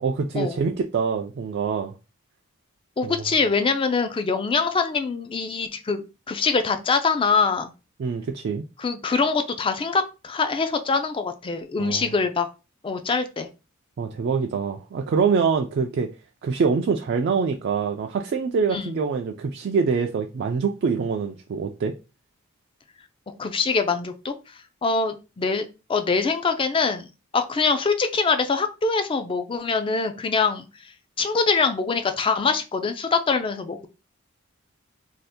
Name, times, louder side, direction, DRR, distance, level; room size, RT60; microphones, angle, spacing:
voice 1, 0.0-1.9 3.0-3.2 8.0-8.7 11.8-12.1 14.0-16.1 16.4-21.9, right 5 dB, 50° right, 0.3 m, -25 dB
voice 2, 3.0-7.7 8.8-12.5 12.8-13.5 18.7-18.9 23.4-24.3 24.8-27.1 27.3-30.7 31.2-33.9, left 4 dB, 25° left, 0.3 m, -24 dB
2.7 x 2.4 x 3.5 m
head